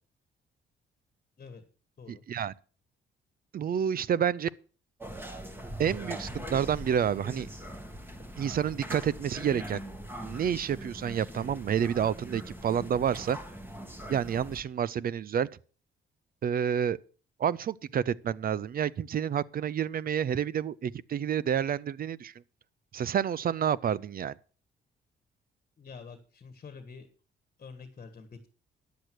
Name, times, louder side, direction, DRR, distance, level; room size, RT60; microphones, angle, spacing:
voice 1, 2.1-2.5 3.5-4.5 5.8-7.5 8.4-9.8 10.2-13.4 14.1-15.5 16.4-17.0 17.4-22.3 22.9-24.3, right 8 dB, 50° right, 0.5 m, -29 dB
sound 1, 5.0-14.6, equal, 10° right, 2.3 m, -41 dB
voice 2, 25.8-27.1 27.6-28.5, left 5 dB, 40° left, 1.6 m, -47 dB
10.5 x 7.9 x 6.1 m
cardioid pair, 90°, 20 cm